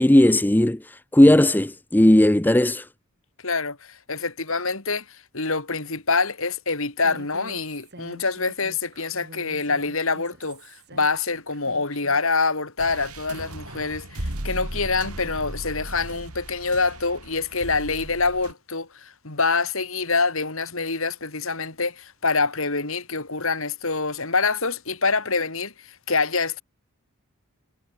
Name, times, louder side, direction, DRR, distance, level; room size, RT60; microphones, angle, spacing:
voice 1, 0.0-2.9, left 1 dB, 10° left, 0.5 m, -17 dB
voice 2, 3.4-26.6, left 4 dB, 65° left, 3.5 m, -26 dB
Human voice, 7.0-12.2, right 1 dB, 50° right, 6.7 m, -46 dB
sound 1, 12.8-18.5, right 1 dB, 85° right, 4.5 m, -36 dB
head